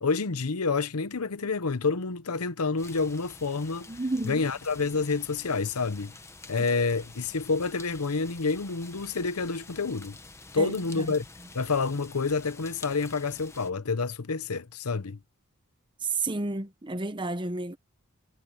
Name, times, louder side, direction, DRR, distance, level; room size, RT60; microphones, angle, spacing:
voice 1, 0.0-3.9 4.2-6.2 6.5-10.2 10.5-11.3 11.5-15.2, left 4 dB, 80° left, 0.9 m, -28 dB
sound 1, 2.8-13.7, left 3 dB, 10° left, 1.0 m, -49 dB
voice 2, 3.9-4.4 10.6-11.1 16.0-17.8, right 3 dB, 20° right, 0.9 m, -31 dB
head